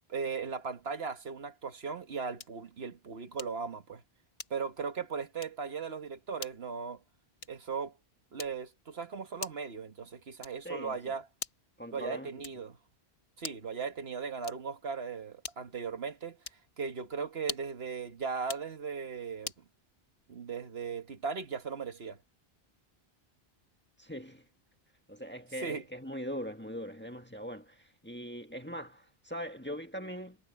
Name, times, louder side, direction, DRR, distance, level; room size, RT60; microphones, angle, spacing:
voice 1, 0.1-4.0 4.5-7.0 7.5-8.0 8.3-11.2 11.9-12.8 13.4-16.4 16.8-19.5 20.3-22.2 25.6-25.8, right 5 dB, 70° right, 1.6 m, -37 dB
sound 1, 2.4-2.7 3.4-3.7 4.4-4.8 5.4-5.7 6.4-6.7 7.4-7.7 8.4-8.8 9.4-9.8 10.4-10.8 11.4-11.8 12.4-12.8 13.4-13.8 14.4-14.8 15.4-15.8 16.4-16.7 17.4-17.8 18.4-18.7 19.4-19.7, left 5 dB, 70° left, 1.6 m, -44 dB
voice 2, 10.6-11.1 11.8-12.3 24.0-24.4 25.1-30.4, equal, 10° left, 1.6 m, -41 dB
omnidirectional pair, 1.1 m